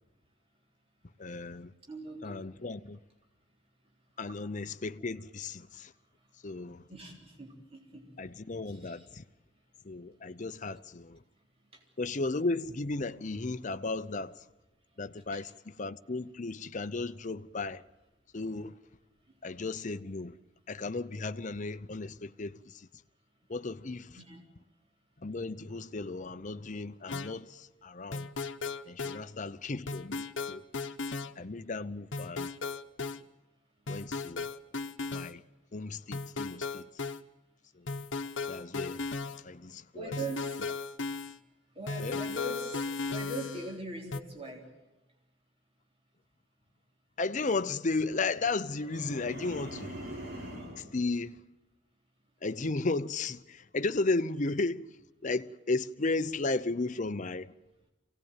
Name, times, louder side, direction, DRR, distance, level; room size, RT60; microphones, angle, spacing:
voice 1, 1.2-1.7 2.2-3.0 4.2-5.9 6.4-6.8 8.2-9.2 9.8-11.2 12.0-14.4 15.0-17.8 18.3-18.7 19.4-20.4 20.7-22.9 23.5-24.2 25.2-28.3 28.9-30.6 31.4-32.5 33.9-34.4 35.1-35.4 35.7-36.9 37.8-37.9 38.5-39.0 39.4-40.2 42.0-42.2 47.2-49.9 50.8-51.4 52.4-54.9 55.2-57.5, left 3 dB, 40° left, 0.7 m, -34 dB
voice 2, 1.9-2.5 6.9-8.3 8.7-9.0 11.7-11.8 15.3-15.4 24.1-24.4 29.1-29.2 39.9-40.6 41.7-44.7, right 1 dB, 30° right, 3.8 m, -41 dB
sound 1, 27.1-27.3 28.1-29.2 29.9-31.3 32.1-33.2 33.9-35.3 36.1-37.2 37.9-39.4 40.1-41.4 41.9-43.8 44.1-44.2, left 4 dB, 75° left, 1.0 m, -36 dB
sound 2, 48.8-50.9, right 1 dB, 55° right, 5.6 m, -42 dB
24.5 x 18.0 x 9.0 m
head